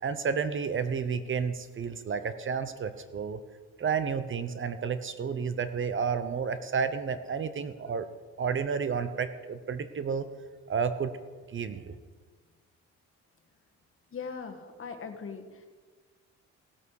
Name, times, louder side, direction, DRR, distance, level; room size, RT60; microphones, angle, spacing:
voice 1, 0.0-3.4 3.8-8.1 8.4-10.3 10.7-11.1 11.5-12.0, right 6 dB, 40° right, 11 dB, 0.8 m, -31 dB
voice 2, 14.1-15.7, left 5 dB, 45° left, 5 dB, 1.6 m, -40 dB
17.0 x 8.3 x 4.8 m, 1.5 s
cardioid pair, 90°, 30 cm